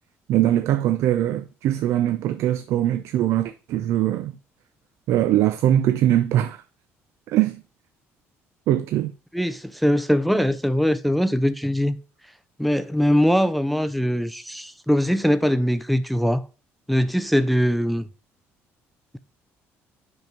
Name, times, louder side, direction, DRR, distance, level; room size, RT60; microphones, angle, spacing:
voice 1, 0.3-4.3 5.1-6.6 7.3-7.6 8.7-9.1, right 12 dB, 70° right, 0.5 m, -21 dB
voice 2, 9.3-12.0 12.6-16.5 16.9-18.1, equal, ahead, 0.4 m, -21 dB
5.4 x 5.4 x 5.9 m
cardioid pair, 120°, 5 cm